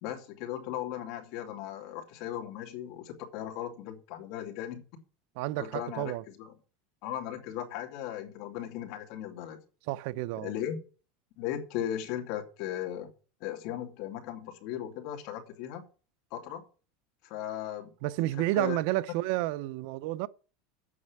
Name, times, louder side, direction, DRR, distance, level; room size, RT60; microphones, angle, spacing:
voice 1, 0.0-4.8 5.6-6.5 7.0-9.6 10.3-10.8 11.4-13.1 13.4-15.8 16.3-16.6 17.2-17.9 18.3-18.8, left 11 dB, 55° left, 2.6 m, -37 dB
voice 2, 5.4-6.2 9.9-10.5 18.0-20.3, right 17 dB, 60° right, 0.6 m, -30 dB
8.6 x 6.5 x 8.5 m
supercardioid pair, 150°, 0 cm